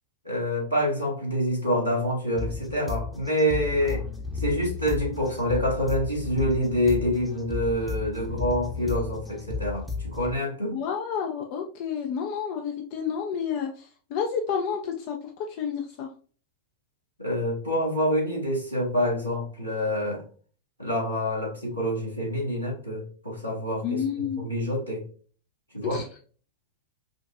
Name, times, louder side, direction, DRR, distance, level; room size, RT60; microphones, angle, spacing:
voice 1, 0.2-4.0 4.4-10.8 17.2-20.2 20.8-25.0 25.7-26.0, equal, 90° left, -5 dB, 1.9 m, -27 dB
sound 1, 2.4-10.4, left 4 dB, ahead, 0.8 m, -34 dB
voice 2, 10.7-16.1 23.8-24.5 25.8-26.1, left 7 dB, 45° left, 3 dB, 0.6 m, -30 dB
5.1 x 2.4 x 2.6 m, 0.41 s
figure-of-eight pair, 90°, 0 cm